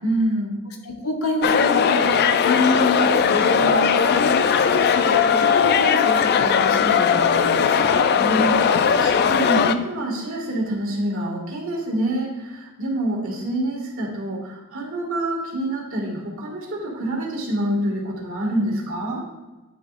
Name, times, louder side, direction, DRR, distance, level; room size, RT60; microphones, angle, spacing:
voice 1, 0.0-0.5 8.2-19.2, right 1 dB, 65° right, -2 dB, 2.0 m, -26 dB
voice 2, 0.8-7.9, left 2 dB, 70° left, 3 dB, 1.1 m, -27 dB
sound 1, 1.4-9.7, left 6 dB, 45° left, 0.4 m, -18 dB
9.7 x 6.6 x 2.5 m, 1.2 s
head